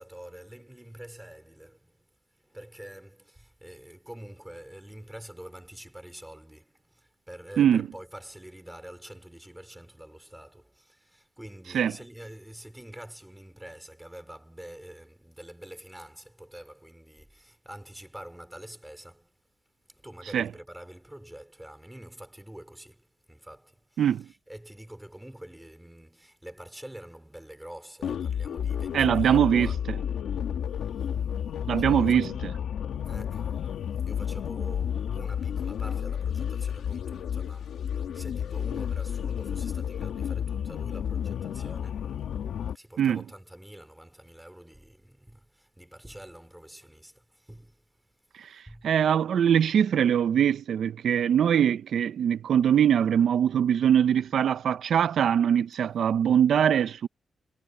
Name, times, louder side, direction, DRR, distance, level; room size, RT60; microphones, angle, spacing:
voice 1, 0.0-19.4 19.8-29.8 30.8-31.3 31.8-32.3 33.0-42.3 42.7-48.2 48.7-48.9, right 1 dB, 5° right, 3.9 m, -46 dB
sound 1, 28.0-42.8, left 8 dB, 90° left, 1.8 m, -31 dB
voice 2, 28.9-29.7 31.7-32.3 43.0-43.2 48.3-57.1, right 9 dB, 75° right, 0.4 m, -22 dB
wide cardioid pair, 135°, 0 cm